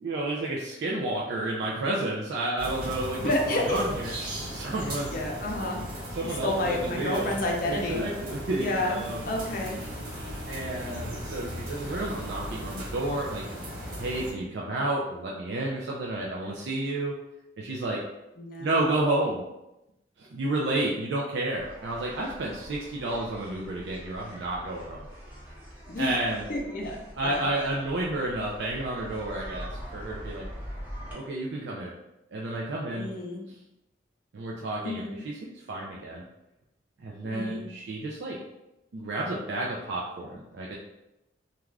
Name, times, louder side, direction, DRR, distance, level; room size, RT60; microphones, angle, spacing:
voice 1, 0.0-4.1 4.5-5.1 6.1-7.4 7.7-9.2 10.5-13.4 14.0-17.1 17.6-18.0 18.6-19.4 20.2-25.1 26.0-26.4 27.2-30.5 31.1-31.9 32.3-33.1 34.3-35.3 35.7-36.2 37.0-38.4 38.9-40.7, right 2 dB, 75° right, -3 dB, 0.4 m, -31 dB
sound 1, 2.6-14.3, equal, 50° right, 1.0 m, -37 dB
voice 2, 3.2-3.8 5.1-5.9 6.4-8.0 8.6-9.8 18.4-18.8 25.9-26.2 26.5-27.5 32.9-33.5 34.8-35.2 37.2-37.7, left 1 dB, 50° left, 0 dB, 0.5 m, -30 dB
sound 2, 21.6-31.1, equal, 10° right, 0.7 m, -43 dB
2.4 x 2.4 x 3.2 m, 0.92 s
head